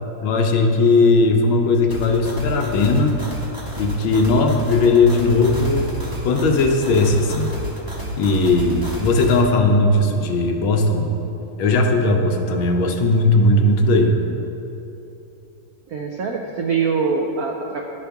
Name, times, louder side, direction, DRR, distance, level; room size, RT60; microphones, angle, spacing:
voice 1, 0.2-3.2 3.8-5.9 6.2-7.5 8.2-11.1 11.6-14.1, left 2 dB, 80° left, 3 dB, 1.5 m, -17 dB
sound 1, 1.9-9.4, right 1 dB, 15° right, 0.7 m, -31 dB
voice 2, 15.9-17.8, right 5 dB, 85° right, 1 dB, 0.8 m, -23 dB
11.0 x 5.7 x 3.4 m, 2.9 s
omnidirectional pair, 2.2 m